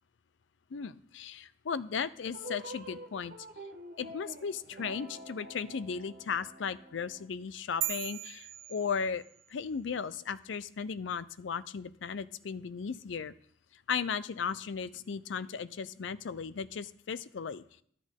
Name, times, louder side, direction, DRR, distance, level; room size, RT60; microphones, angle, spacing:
voice 1, 0.7-3.3 4.0-9.2 9.5-13.3 13.9-17.6, left 6 dB, 75° left, 16 dB, 0.5 m, -36 dB
sound 1, 2.2-7.3, right 1 dB, 50° right, 1.0 m, -47 dB
sound 2, 7.8-9.5, right 13 dB, 75° right, 0.5 m, -38 dB
12.5 x 8.4 x 3.7 m, 0.63 s
head